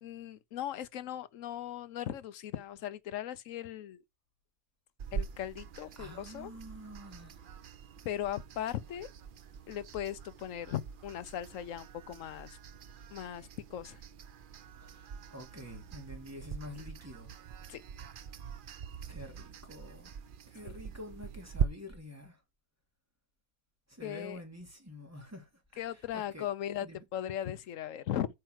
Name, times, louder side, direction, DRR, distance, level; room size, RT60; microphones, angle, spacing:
voice 1, 0.0-4.0 5.1-6.5 8.0-9.1 9.7-12.6 13.1-14.0 17.7-17.8 20.6-20.8 24.0-24.4 25.8-26.9 27.1-28.3, left 11 dB, 65° left, 1.1 m, -38 dB
sound 1, 5.0-21.7, right 7 dB, 55° right, 0.5 m, -42 dB
voice 2, 6.0-7.4 14.8-17.3 19.1-20.1 20.5-22.4 23.9-26.5 26.8-27.0, left 1 dB, 10° right, 2.8 m, -48 dB
8.2 x 4.6 x 6.4 m
omnidirectional pair, 1.5 m